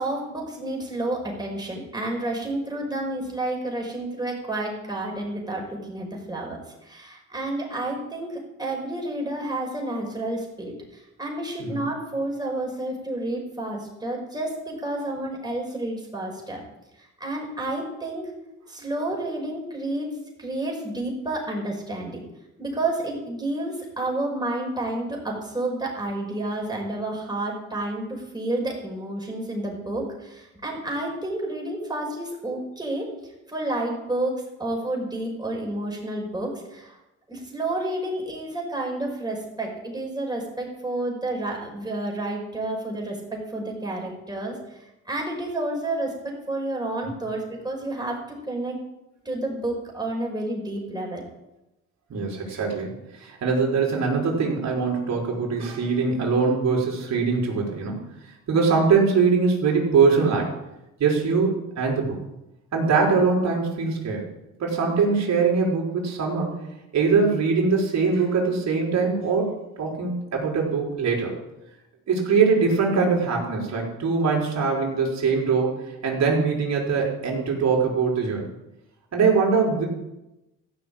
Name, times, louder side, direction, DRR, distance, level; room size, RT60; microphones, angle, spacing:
voice 1, 0.0-16.6 17.2-18.3 18.7-20.1 20.4-22.3 22.6-33.1 33.5-37.0 37.3-44.8 45.1-48.8 49.3-51.3, right 2 dB, 15° right, -1 dB, 5.3 m, -30 dB
voice 2, 52.1-58.1 58.5-60.5 61.0-62.2 62.7-64.3 64.6-66.5 66.9-71.3 72.1-75.8 76.0-78.5 79.1-79.9, right 5 dB, 60° right, -2 dB, 4.4 m, -22 dB
15.0 x 6.3 x 8.6 m, 0.94 s
cardioid pair, 90°, 30 cm